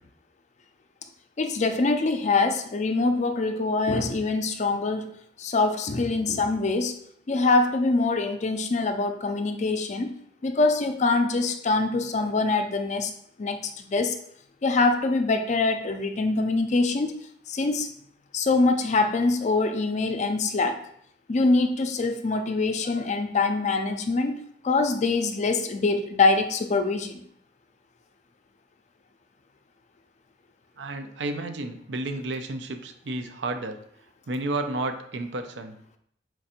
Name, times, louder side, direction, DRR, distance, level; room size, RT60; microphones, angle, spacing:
voice 1, 1.4-5.1 5.4-7.0 7.3-10.1 10.4-13.1 13.4-14.2 14.6-17.2 17.5-17.9 18.3-20.8 21.3-27.2, left 3 dB, 40° left, 8 dB, 0.4 m, -24 dB
voice 2, 30.8-33.8 34.3-35.8, right 2 dB, 90° right, 7 dB, 0.6 m, -31 dB
4.5 x 2.5 x 4.2 m, 0.67 s
head